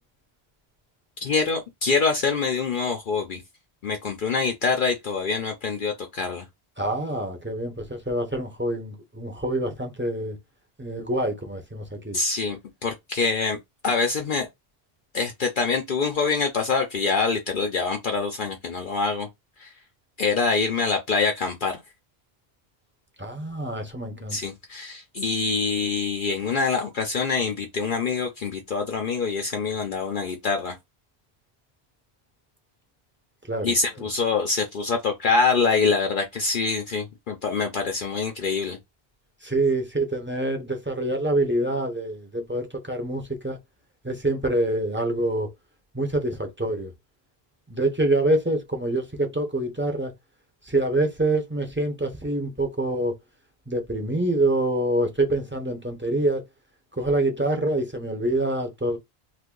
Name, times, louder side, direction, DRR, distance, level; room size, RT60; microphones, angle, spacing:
voice 1, 1.2-3.4 3.8-6.4 12.1-13.6 13.8-14.5 15.1-19.3 19.6-19.7 20.2-21.8 24.3-30.8 33.6-38.8, left 4 dB, 60° left, 0.7 m, -25 dB
voice 2, 6.8-10.4 10.8-12.2 23.2-24.4 33.5-33.7 39.4-43.6 44.0-45.5 45.9-46.9 47.7-50.1 50.7-53.2 53.7-56.4 56.9-59.0, right 1 dB, 15° right, 0.6 m, -26 dB
2.6 x 2.6 x 3.7 m
omnidirectional pair, 1.0 m